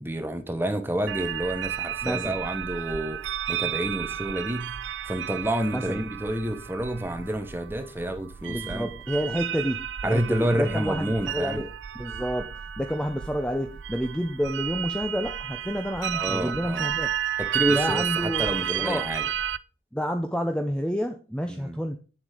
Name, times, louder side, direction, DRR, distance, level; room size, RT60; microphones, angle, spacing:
voice 1, 0.0-3.2 3.5-4.7 5.1-8.9 10.0-11.6 16.1-16.9 17.4-19.3 21.5-21.8, right 1 dB, 10° right, 1.1 m, -29 dB
sound 1, 1.1-19.6, right 10 dB, 80° right, 0.5 m, -32 dB
voice 2, 2.0-2.4 5.7-6.0 8.5-11.7 11.9-17.1 17.7-18.5 18.8-19.1 19.9-22.0, equal, 5° left, 0.7 m, -29 dB
9.4 x 7.1 x 5.0 m
head